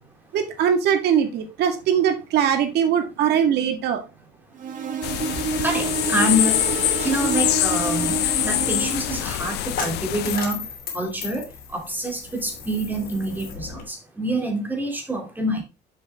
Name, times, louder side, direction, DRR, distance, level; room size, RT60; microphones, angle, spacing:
voice 1, 0.3-4.0, right 8 dB, 75° right, 6 dB, 1.8 m, -21 dB
sound 1, 4.6-9.4, right 4 dB, 50° right, 1.6 m, -28 dB
sound 2, 5.0-10.4, left 17 dB, 80° left, 0.5 m, -25 dB
voice 2, 5.6-10.6 10.9-11.5 11.7-15.6, equal, 10° right, 1 dB, 2.7 m, -26 dB
Coin (dropping), 8.1-13.8, left 6 dB, 55° left, 2.8 m, -36 dB
7.1 x 5.9 x 3.5 m, 0.29 s
cardioid pair, 110°, 17 cm